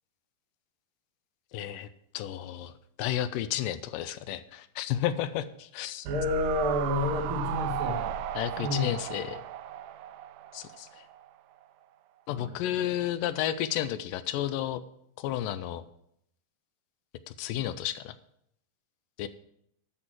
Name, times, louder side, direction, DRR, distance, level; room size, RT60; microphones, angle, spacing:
voice 1, 1.5-1.9 2.1-6.1 8.4-9.4 10.5-10.9 12.3-14.8 15.2-15.8 17.4-18.2 19.2-19.3, left 12 dB, 85° left, 13 dB, 2.2 m, -32 dB
voice 2, 6.0-8.2 8.6-9.0 12.3-12.9, left 2 dB, 50° right, 0 dB, 1.9 m, -30 dB
sound 1, 6.1-11.3 11.6-11.7, right 9 dB, 80° right, 1.9 m, -35 dB
12.5 x 4.2 x 7.4 m, 0.72 s
omnidirectional pair, 3.9 m